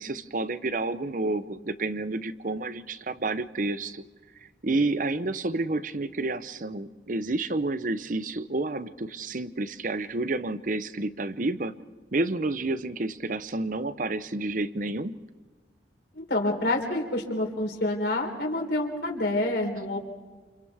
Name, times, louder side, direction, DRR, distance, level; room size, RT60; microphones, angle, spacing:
voice 1, 0.0-4.0 4.6-11.7 12.1-15.2, right 2 dB, 45° right, 12 dB, 0.8 m, -30 dB
voice 2, 16.1-20.0, left 1 dB, 65° left, 2 dB, 3.9 m, -28 dB
29.5 x 29.0 x 3.5 m, 1.4 s
head